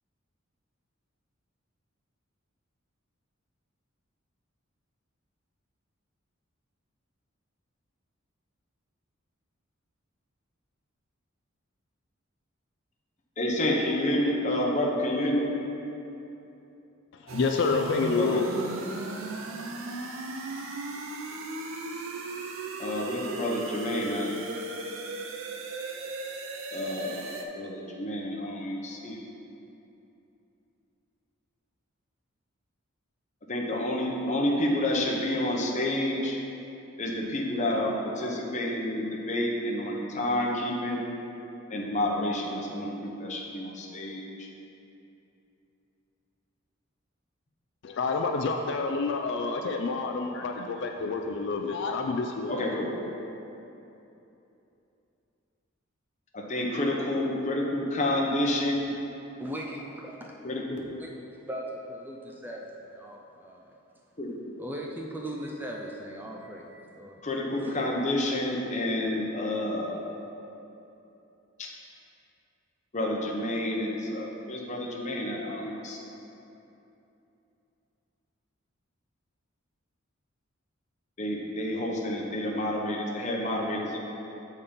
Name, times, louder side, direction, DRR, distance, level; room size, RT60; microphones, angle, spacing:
voice 1, 13.4-15.5 18.2-18.6 22.8-24.3 26.7-29.2 33.5-36.4 37.0-41.0 41.7-42.9 43.2-44.5 52.5-52.9 56.3-58.9 60.4-60.8 64.2-64.4 67.2-70.0 71.6-71.7 72.9-76.0 81.2-84.0, left 1 dB, 35° left, -2 dB, 0.9 m, -29 dB
voice 2, 17.1-18.5 47.8-52.8, left 4 dB, 55° left, 3 dB, 0.4 m, -28 dB
sound 1, 17.3-27.4, right 2 dB, 75° right, 0.6 m, -37 dB
voice 3, 59.4-60.3 61.0-63.6 64.6-67.2 67.5-67.8, equal, 10° right, -1 dB, 0.4 m, -39 dB
7.2 x 4.2 x 5.1 m, 2.9 s
head